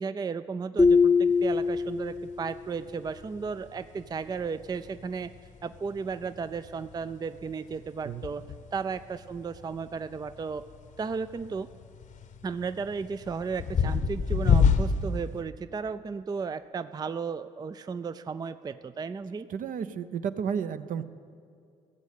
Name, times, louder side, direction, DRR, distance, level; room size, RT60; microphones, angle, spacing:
voice 1, 0.0-5.3 5.6-8.4 8.7-10.7 11.0-11.7 12.4-19.5, right 5 dB, 25° right, 13 dB, 0.4 m, -34 dB
sound 1, 0.8-2.5, left 5 dB, 15° left, 0.7 m, -22 dB
sound 2, 1.3-15.4, left 6 dB, 55° left, 0.9 m, -31 dB
voice 2, 19.5-21.0, right 7 dB, 60° right, 11 dB, 0.7 m, -32 dB
14.5 x 7.3 x 8.3 m, 2.4 s
supercardioid pair, 60°, 16 cm